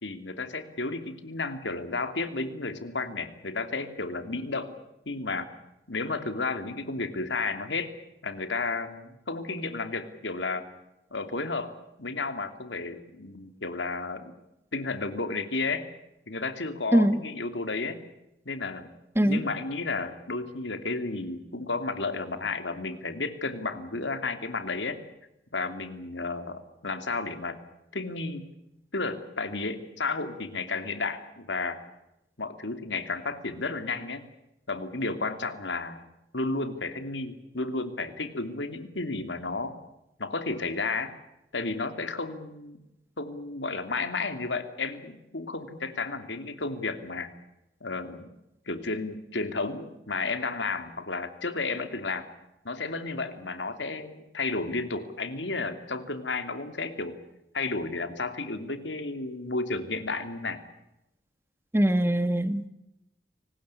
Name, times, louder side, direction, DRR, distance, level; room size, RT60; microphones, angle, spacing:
voice 1, 0.0-4.8 5.1-5.5 5.9-7.9 8.2-10.7 11.1-11.7 12.0-14.3 14.7-15.8 16.3-18.0 18.4-18.9 19.2-25.0 25.5-27.6 27.9-28.4 28.9-31.8 32.4-34.2 34.7-36.0 36.3-39.7 40.2-41.1 41.5-42.8 43.2-47.3 47.8-48.3 48.7-52.3 52.6-57.2 57.5-60.6, left 3 dB, 85° left, 9 dB, 2.9 m, -32 dB
voice 2, 61.7-62.7, right 1 dB, 15° right, 12 dB, 1.3 m, -22 dB
25.0 x 19.5 x 8.4 m, 0.89 s
head